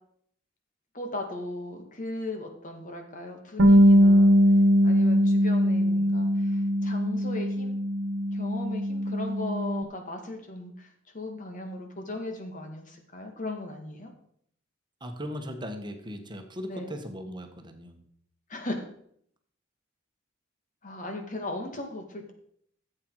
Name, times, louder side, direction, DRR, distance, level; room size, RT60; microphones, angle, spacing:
voice 1, 0.9-4.3 4.8-7.8 8.3-14.1 16.7-17.0 18.5-18.9 20.8-22.3, left 2 dB, 40° left, 4 dB, 2.0 m, -37 dB
Bass guitar, 3.6-9.8, equal, 85° right, 1.3 m, -21 dB
voice 2, 15.0-18.0, equal, 25° right, 5 dB, 1.5 m, -38 dB
14.0 x 7.9 x 4.8 m, 0.68 s
head